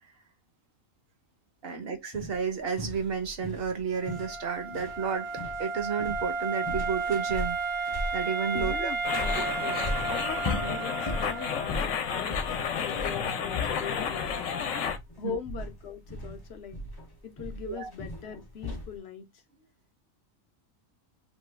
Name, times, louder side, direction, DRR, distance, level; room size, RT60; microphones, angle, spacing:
voice 1, 1.6-5.3 5.6-8.9 9.3-9.4 10.6-10.8 15.2-15.4 17.7-17.9, right 6 dB, 55° right, 1.0 m, -32 dB
sound 1, 2.1-19.0, left 2 dB, 30° left, 0.4 m, -38 dB
Wind instrument woodwind instrument, 4.0-11.8, right 4 dB, 80° right, 1.2 m, -33 dB
voice 2, 8.5-9.9 10.7-12.4 12.8-14.8 15.2-16.8 17.2-19.4, left 8 dB, 65° left, 0.8 m, -41 dB
sound 2, 9.0-15.0, left 7 dB, 80° left, 1.0 m, -31 dB
3.0 x 2.3 x 3.2 m
omnidirectional pair, 1.3 m